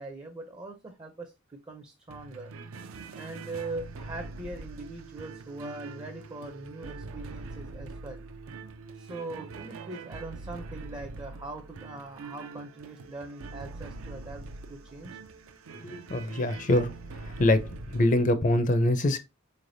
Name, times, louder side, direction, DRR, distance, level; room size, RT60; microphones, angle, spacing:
voice 1, 0.0-2.5 3.2-8.2 9.0-15.2, right 2 dB, 20° right, 0.4 m, -41 dB
sound 1, 2.1-18.3, right 3 dB, 85° right, 0.5 m, -43 dB
voice 2, 15.8-16.9 17.2-19.2, left 1 dB, 40° left, 0.5 m, -24 dB
4.2 x 3.3 x 2.6 m
head